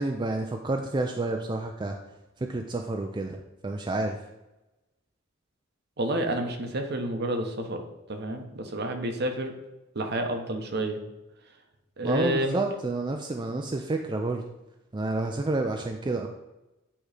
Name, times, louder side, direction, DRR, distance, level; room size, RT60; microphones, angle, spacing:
voice 1, 0.0-2.0 2.4-3.4 3.6-4.2 12.0-14.4 14.9-16.3, right 2 dB, 20° right, 4 dB, 0.4 m, -29 dB
voice 2, 6.0-7.8 8.1-9.5 9.9-11.0 12.0-12.6, right 1 dB, 55° right, 5 dB, 0.9 m, -29 dB
8.7 x 3.1 x 4.9 m, 0.99 s
head